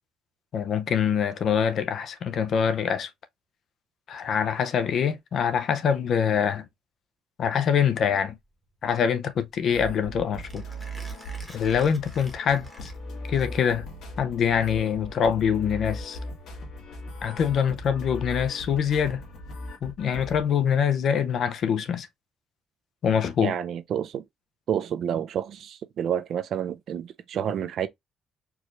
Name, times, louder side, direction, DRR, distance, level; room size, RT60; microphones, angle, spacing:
voice 1, 0.5-3.1 4.1-6.6 7.4-8.4 8.8-10.6 11.5-12.9 13.3-13.9 14.2-16.2 17.2-19.2 19.8-22.1 23.0-23.5, left 7 dB, 50° left, 0.5 m, -24 dB
Mechanisms, 8.0-13.9, left 1 dB, 10° left, 1.0 m, -50 dB
sound 1, 9.7-20.4, equal, 65° left, 1.8 m, -38 dB
voice 2, 23.4-24.2 24.7-27.9, right 9 dB, 55° right, 0.5 m, -29 dB
4.7 x 2.5 x 3.0 m
cardioid pair, 150°, 0 cm